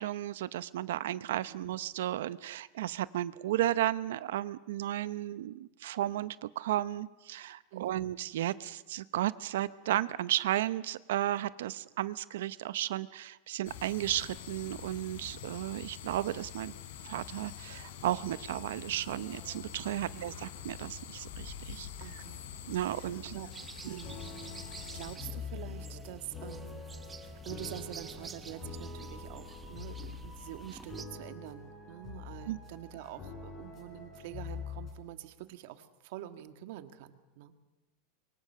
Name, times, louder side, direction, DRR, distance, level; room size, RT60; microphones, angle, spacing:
voice 1, 0.0-16.7 17.0-21.9 22.7-23.4 23.9-24.0 32.5-32.6, right 13 dB, 80° right, 16 dB, 0.7 m, -34 dB
voice 2, 7.7-8.1 20.1-20.4 22.0-22.4 22.9-23.5 23.8-24.3 24.7-26.8 27.2-37.5, right 13 dB, 55° right, 10 dB, 1.7 m, -46 dB
sound 1, 13.6-25.2, left 8 dB, 75° left, 3.3 m, -46 dB
sound 2, 23.5-31.0, right 5 dB, 15° right, 1.0 m, -49 dB
sound 3, 23.8-34.9, left 5 dB, 25° left, 5.2 m, -45 dB
26.5 x 23.5 x 6.8 m, 1.1 s
supercardioid pair, 165°, 0 cm